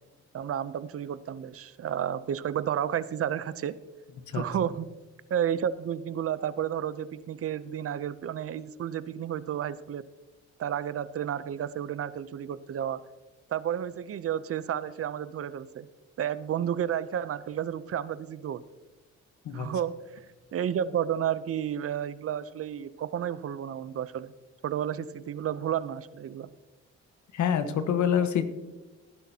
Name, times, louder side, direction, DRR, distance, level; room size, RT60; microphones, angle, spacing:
voice 1, 0.3-3.8 4.3-4.9 5.3-10.0 10.6-13.0 13.5-15.9 16.2-18.6 19.5-20.0 20.5-24.3 24.6-26.5, right 9 dB, 50° right, 16 dB, 0.6 m, -31 dB
voice 2, 27.3-28.4, left 8 dB, 70° left, 9 dB, 1.2 m, -26 dB
18.0 x 10.0 x 2.8 m, 1.1 s
cardioid pair, 90°, 30 cm